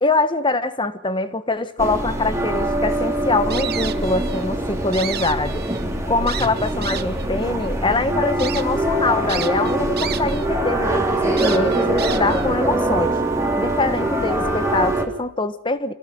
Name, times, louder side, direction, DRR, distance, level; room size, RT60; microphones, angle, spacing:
voice 1, 0.0-5.6 6.1-13.1 13.6-15.9, left 3 dB, 20° left, 11 dB, 1.3 m, -23 dB
sound 1, 1.8-15.1, right 1 dB, 15° right, 3.1 m, -23 dB
sound 2, 3.5-4.4 4.8-5.8 6.3-7.3 7.8-7.9 8.4-8.6 9.3-10.5 10.8-10.9 11.4-12.5, right 10 dB, 45° right, 1.0 m, -31 dB
25.5 x 16.5 x 7.8 m, 0.75 s
head